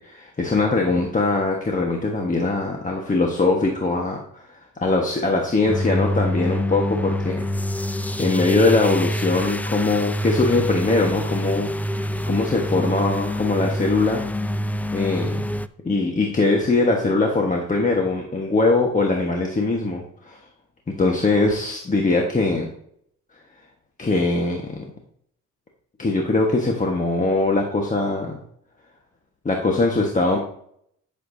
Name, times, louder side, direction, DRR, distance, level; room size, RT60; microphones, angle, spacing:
voice 1, 0.1-7.5 8.2-14.2 14.9-15.4 15.8-20.4 21.0-22.7 24.0-24.7 26.0-28.4 29.4-30.4, left 3 dB, 25° left, 0 dB, 1.3 m, -21 dB
sound 1, 5.7-15.7, equal, 5° left, 0.3 m, -26 dB
11.0 x 6.8 x 2.7 m, 0.67 s
cardioid pair, 90°, 30 cm